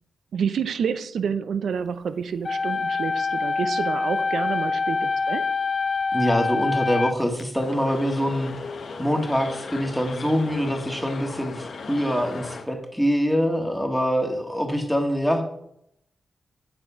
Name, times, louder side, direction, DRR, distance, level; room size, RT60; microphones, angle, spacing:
voice 1, 0.3-5.4, right 7 dB, 85° right, 13 dB, 0.6 m, -28 dB
sound 1, 2.4-7.4, left 4 dB, 45° left, 0.4 m, -25 dB
voice 2, 6.1-8.5 9.0-15.4, equal, ahead, 3 dB, 1.5 m, -24 dB
sound 2, 7.5-12.7, left 4 dB, 70° left, 1.1 m, -37 dB
7.9 x 6.9 x 5.7 m, 0.77 s
cardioid pair, 85°, 0 cm